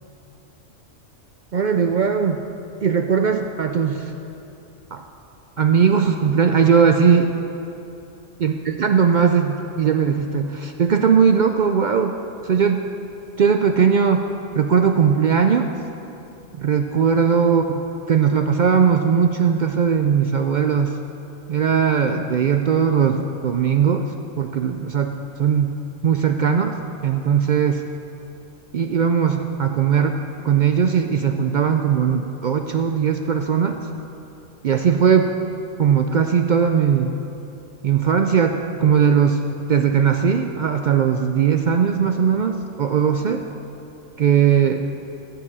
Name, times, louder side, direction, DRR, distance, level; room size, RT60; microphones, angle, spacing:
voice 1, 1.5-2.5 2.8-4.1 4.9-5.0 5.6-7.3 8.4-8.5 8.8-12.1 12.4-12.8 13.4-14.2 14.5-15.7 16.5-17.6 18.1-21.0 21.5-25.1 25.4-25.8 26.0-26.8 27.0-27.8 28.7-33.8 34.6-35.3 35.8-37.1 37.8-39.4 39.7-43.4 44.2-44.8, right 7 dB, 70° right, 5 dB, 0.4 m, -19 dB
12.0 x 5.6 x 8.5 m, 2.8 s
omnidirectional pair, 1.3 m